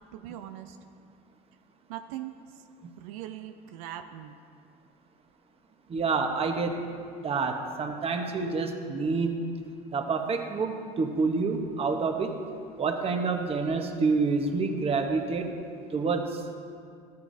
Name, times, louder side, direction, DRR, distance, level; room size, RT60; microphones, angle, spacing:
voice 1, 0.1-0.8 1.9-2.4 3.0-4.4, right 12 dB, 90° right, 7 dB, 0.5 m, -40 dB
voice 2, 5.9-6.9 7.2-9.5 9.9-12.3 12.8-15.5 15.9-16.4, right 4 dB, 30° right, 4 dB, 1.0 m, -28 dB
13.5 x 9.5 x 2.7 m, 2.4 s
supercardioid pair, 100°, 18 cm